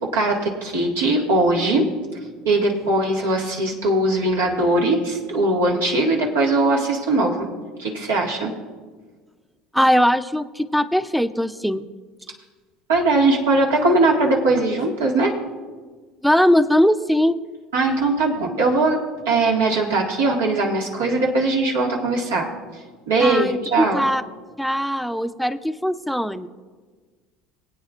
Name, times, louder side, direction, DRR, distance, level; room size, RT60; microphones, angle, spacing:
voice 1, 0.0-1.9 2.4-7.5 7.8-8.5 12.9-15.3 17.7-19.0 19.2-22.5 23.1-24.1, right 2 dB, 90° right, -1 dB, 1.8 m, -20 dB
voice 2, 9.7-11.9 16.2-17.4 23.2-24.2 24.6-26.5, equal, ahead, 11 dB, 0.5 m, -20 dB
22.0 x 8.7 x 2.5 m, 1.4 s
hypercardioid pair, 85°, 0 cm